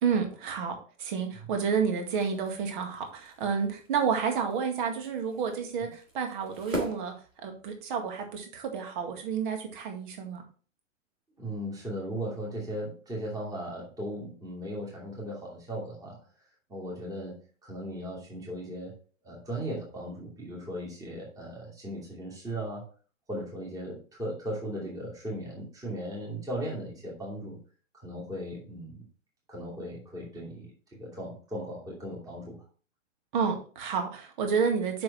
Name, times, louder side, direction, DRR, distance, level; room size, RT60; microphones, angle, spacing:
voice 1, 0.0-7.1 7.4-10.4 33.3-35.0, right 6 dB, 40° right, 5 dB, 2.0 m, -30 dB
sound 1, 2.0-8.0, equal, 80° right, 3.0 m, -42 dB
voice 2, 11.4-16.2 16.7-18.9 19.2-22.9 23.3-27.6 27.9-29.1 29.5-32.6, equal, 10° right, -4 dB, 2.6 m, -37 dB
7.6 x 5.9 x 4.3 m, 0.39 s
figure-of-eight pair, 110°, 39 cm